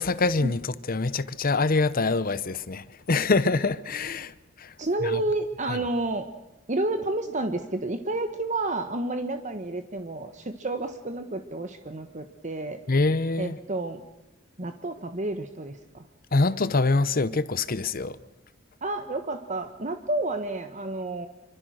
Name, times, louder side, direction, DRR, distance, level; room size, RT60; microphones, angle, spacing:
voice 1, 0.0-4.3 4.6-4.7 5.0-5.2 5.7-5.8 12.9-13.6 16.3-18.2, left 3 dB, 45° left, 0.9 m, -25 dB
voice 2, 4.8-6.3 6.7-12.8 13.4-14.0 14.6-16.1 18.8-21.3, right 2 dB, 40° right, 1.3 m, -30 dB
27.0 x 25.0 x 6.5 m
head